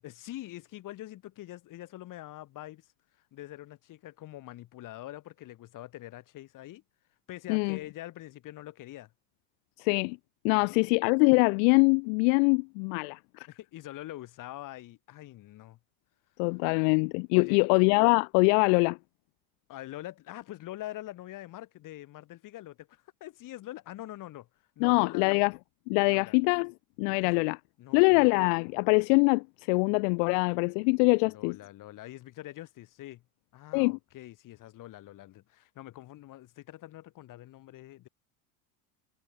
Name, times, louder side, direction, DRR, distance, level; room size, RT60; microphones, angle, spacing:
voice 1, 0.0-2.9 3.3-6.8 7.3-9.1 10.5-10.8 13.5-15.8 17.3-17.6 19.7-24.5 24.8-25.3 26.0-26.4 27.1-27.3 27.8-28.3 31.2-33.2 33.5-38.1, left 15 dB, 45° left, 7.1 m, -44 dB
voice 2, 9.8-10.2 10.4-13.5 16.4-19.0 24.8-25.5 25.9-26.7 27.0-27.6 27.9-31.6 33.7-34.0, left 40 dB or more, 60° left, 0.6 m, -24 dB
supercardioid pair, 125°, 42 cm